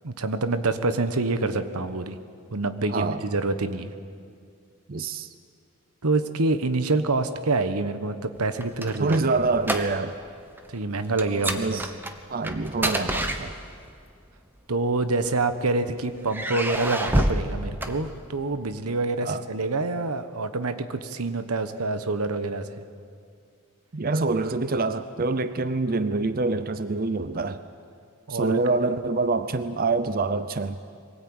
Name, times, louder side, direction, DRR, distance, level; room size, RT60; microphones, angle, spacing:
voice 1, 0.0-2.2 2.5-3.9 6.0-9.3 10.7-11.8 14.7-22.8 28.3-28.6, right 3 dB, 90° right, 10 dB, 1.2 m, -26 dB
voice 2, 2.9-3.2 4.9-5.3 9.0-10.2 11.6-11.9 12.3-13.5 19.2-19.4 23.9-27.6 28.3-30.8, right 3 dB, 40° right, 12 dB, 0.6 m, -26 dB
sound 1, 8.4-10.3 10.5-10.8 11.2-14.0 14.8-15.7 16.3-18.6, right 1 dB, 10° right, 1.1 m, -29 dB
23.0 x 18.0 x 8.8 m, 2.3 s
head